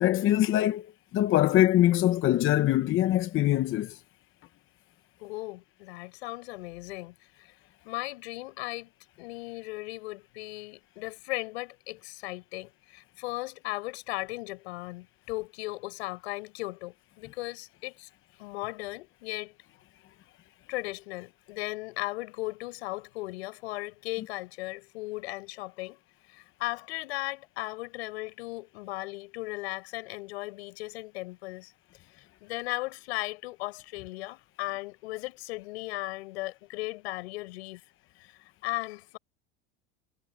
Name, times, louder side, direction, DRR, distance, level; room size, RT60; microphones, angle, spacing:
voice 1, 0.0-0.9 1.1-4.0, left 13 dB, 40° left, 1.0 m, -23 dB
voice 2, 5.2-7.1 7.9-8.9 9.2-18.1 18.4-19.6 20.7-26.0 26.3-31.7 32.1-37.8 38.2-39.2, left 21 dB, 90° left, 6.8 m, -37 dB
supercardioid pair, 140°, 31 cm